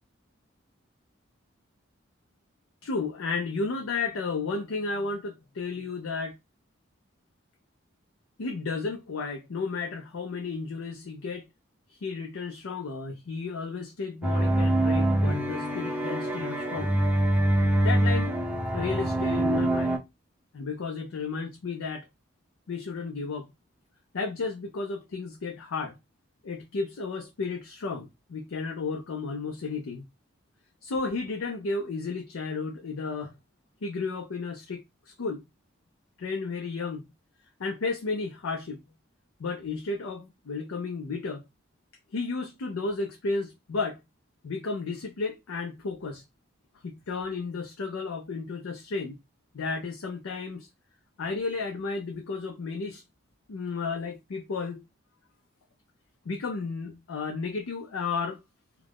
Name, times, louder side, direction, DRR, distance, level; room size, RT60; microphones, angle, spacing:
voice 1, 2.8-6.4 8.4-11.5 12.0-17.0 17.8-18.4 18.7-20.0 20.5-22.1 22.7-23.5 24.1-26.0 26.4-30.0 30.8-33.4 33.8-35.4 36.2-37.0 37.6-38.8 39.4-41.4 42.1-44.0 44.4-46.2 46.8-49.2 49.5-50.7 51.2-53.0 53.5-54.8 56.3-58.4, left 4 dB, 90° left, 0.5 m, -33 dB
sound 1, 14.2-20.0, right 1 dB, 5° right, 0.5 m, -25 dB
2.4 x 2.1 x 3.3 m
head